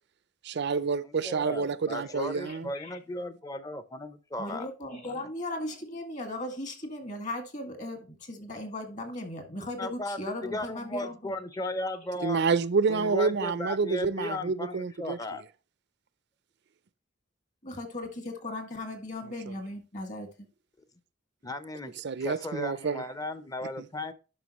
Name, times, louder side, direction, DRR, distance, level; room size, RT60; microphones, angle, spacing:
voice 1, 0.4-2.7 12.2-15.2 19.5-19.6 22.0-23.0, right 5 dB, 60° right, 0.5 m, -28 dB
voice 2, 1.0-4.7 5.0-5.3 9.8-12.4 12.9-15.4 21.4-24.1, left 1 dB, 20° left, 0.7 m, -36 dB
voice 3, 2.0-3.0 4.4-11.3 17.6-20.5, left 1 dB, 40° left, 2.1 m, -38 dB
11.0 x 5.8 x 3.0 m
head